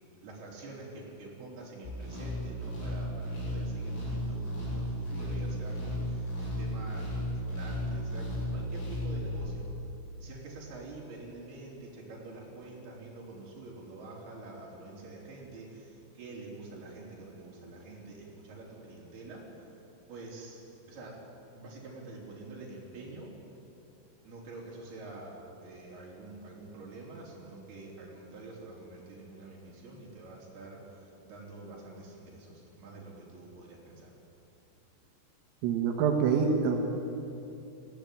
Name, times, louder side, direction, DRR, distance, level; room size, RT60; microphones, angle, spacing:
voice 1, 0.2-9.7 10.2-19.7 20.1-20.6 20.9-21.2 21.5-23.3 24.3-30.8 31.2-34.1, right 2 dB, 55° right, -3 dB, 5.6 m, -46 dB
sound 1, 1.8-9.4, equal, 70° left, 9.9 m, -34 dB
voice 2, 35.6-36.8, right 6 dB, 85° right, 2 dB, 4.0 m, -26 dB
19.5 x 15.5 x 9.3 m, 2.8 s
omnidirectional pair, 5.8 m